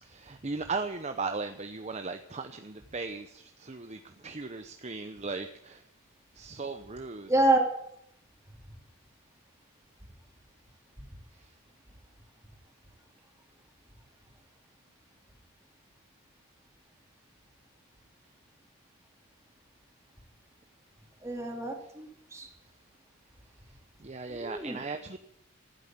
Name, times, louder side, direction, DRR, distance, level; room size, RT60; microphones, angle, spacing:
voice 1, 0.0-5.8 6.3-7.3 11.3-11.5 21.8-21.9 24.0-25.2, right 4 dB, 30° right, 8 dB, 0.7 m, -37 dB
voice 2, 7.3-7.6 21.2-22.5 24.3-24.8, right 2 dB, 15° right, 2 dB, 2.7 m, -27 dB
15.0 x 9.0 x 8.9 m, 0.74 s
head